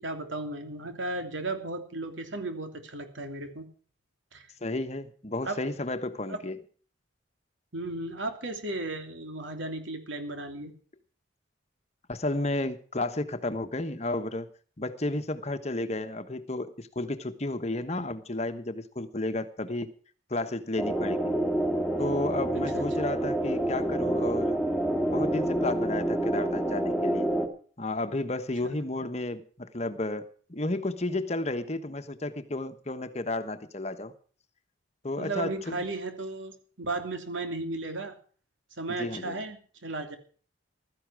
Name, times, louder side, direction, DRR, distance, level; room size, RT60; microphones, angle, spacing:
voice 1, 0.0-3.7 4.3-4.5 5.4-5.6 6.3-6.4 7.7-10.7 22.5-23.1 28.7-28.9 35.2-38.1 38.8-40.2, right 2 dB, 75° right, 6 dB, 3.0 m, -35 dB
voice 2, 4.6-6.6 12.1-14.5 14.8-19.9 20.3-21.3 22.0-24.5 25.1-27.3 27.8-34.1 35.0-35.7 38.9-39.4, left 2 dB, 35° left, 10 dB, 1.2 m, -32 dB
sound 1, 20.8-27.5, right 1 dB, 5° right, 2.3 m, -28 dB
15.5 x 13.5 x 4.8 m, 0.43 s
head